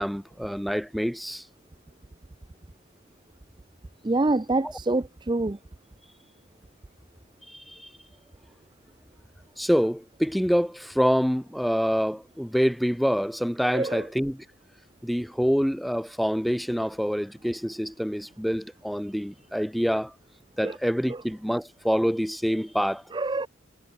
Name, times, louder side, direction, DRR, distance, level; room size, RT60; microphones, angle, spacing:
voice 1, 0.0-1.5 4.6-4.7 7.5-7.9 9.6-14.4 15.0-20.1 20.6-23.0, equal, ahead, 1.2 m, -26 dB
voice 2, 4.0-5.6 13.7-14.0 20.6-20.8 23.1-23.5, right 2 dB, 20° right, 0.5 m, -26 dB
head